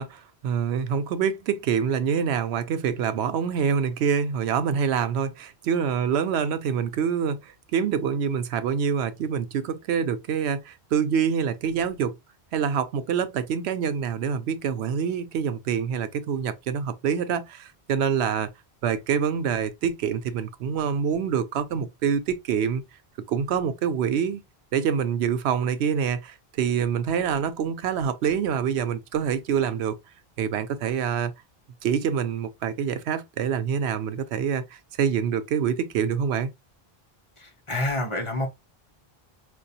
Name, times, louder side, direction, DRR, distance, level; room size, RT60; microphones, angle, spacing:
voice 1, 0.0-12.2 12.5-18.5 18.8-22.8 23.3-24.4 24.7-30.0 30.4-31.3 31.8-36.5, right 7 dB, 85° right, 0.8 m, -26 dB
voice 2, 37.4-38.5, left 1 dB, 30° left, 0.8 m, -28 dB
4.5 x 2.4 x 2.7 m
omnidirectional pair, 1.1 m